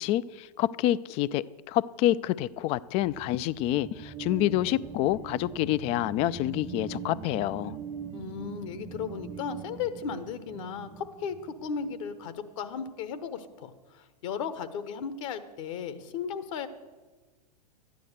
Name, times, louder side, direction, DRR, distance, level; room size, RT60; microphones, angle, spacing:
voice 1, 0.0-7.8, left 14 dB, 30° left, 0.4 m, -27 dB
sound 1, 2.7-12.0, right 6 dB, 20° right, 0.8 m, -42 dB
voice 2, 8.1-16.7, left 6 dB, 50° left, 1.1 m, -36 dB
13.5 x 9.6 x 6.6 m
figure-of-eight pair, 100°, 20 cm